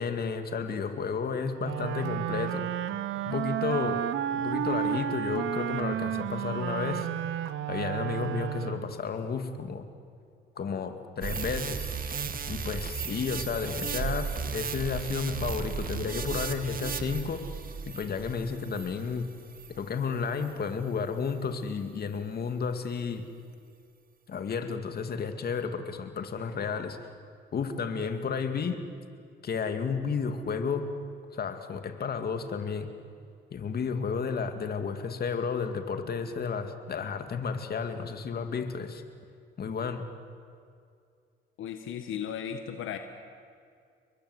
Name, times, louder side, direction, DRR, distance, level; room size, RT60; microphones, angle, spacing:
voice 1, 0.0-2.6 3.3-4.0 4.3-7.1 7.7-9.9 10.6-11.9 12.5-17.5 17.9-19.3 19.7-23.2 24.3-27.0 27.5-28.8 29.4-30.9 31.3-32.9 33.5-39.0 39.6-40.1, left 5 dB, 50° left, 7 dB, 2.5 m, -32 dB
Wind instrument woodwind instrument, 1.6-9.0, right 11 dB, 85° right, 1.0 m, -32 dB
sound 1, 11.2-19.9 20.4-20.5, right 6 dB, 45° right, 1.9 m, -35 dB
voice 2, 41.6-43.0, left 9 dB, 80° left, 7 dB, 1.6 m, -35 dB
29.5 x 22.5 x 8.2 m, 2.3 s
cardioid pair, 90°, 20 cm